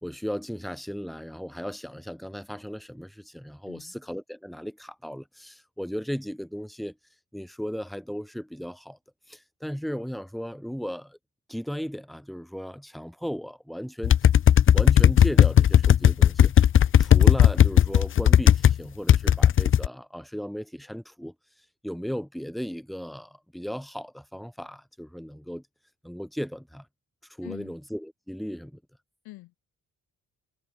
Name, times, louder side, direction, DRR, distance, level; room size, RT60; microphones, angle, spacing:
voice 1, 0.0-6.9 7.3-9.0 9.3-11.2 11.5-14.2 14.7-16.5 17.0-21.3 21.8-25.6 26.0-26.9 27.4-28.8, equal, ahead, 3.3 m, -36 dB
sound 1, 14.0-18.7 19.1-19.9, left 10 dB, 35° left, 0.5 m, -16 dB
voice 2, 27.4-27.7 29.2-29.6, left 19 dB, 90° left, 6.6 m, -44 dB
supercardioid pair, 60°, 36 cm